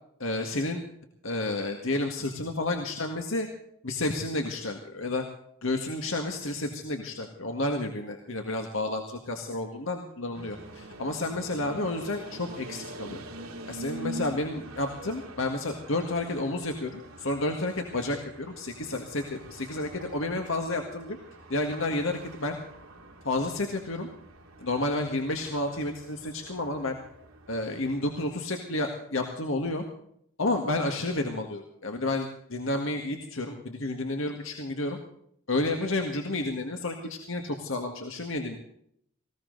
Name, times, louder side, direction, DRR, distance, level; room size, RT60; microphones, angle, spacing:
voice 1, 0.2-0.8 1.2-3.5 3.8-5.3 5.6-13.2 13.7-21.2 21.5-22.6 23.2-24.1 24.6-27.0 27.5-29.8 30.4-35.0 35.5-38.6, left 2 dB, 70° left, 3 dB, 1.8 m, -31 dB
sound 1, 10.3-28.3, right 1 dB, 90° right, 2.8 m, -45 dB
19.5 x 16.5 x 4.0 m, 0.69 s
head